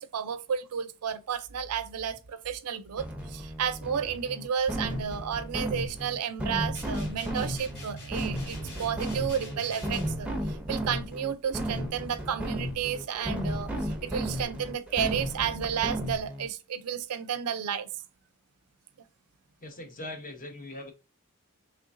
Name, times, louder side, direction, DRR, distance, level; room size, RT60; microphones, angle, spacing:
voice 1, 0.0-17.9, right 8 dB, 80° right, 0.5 m, -32 dB
sound 1, 3.0-16.5, equal, 5° right, 0.6 m, -34 dB
sound 2, 6.7-10.2, right 1 dB, 85° left, 2.2 m, -42 dB
voice 2, 19.6-20.9, left 2 dB, 40° left, 0.9 m, -41 dB
3.7 x 3.2 x 2.5 m
head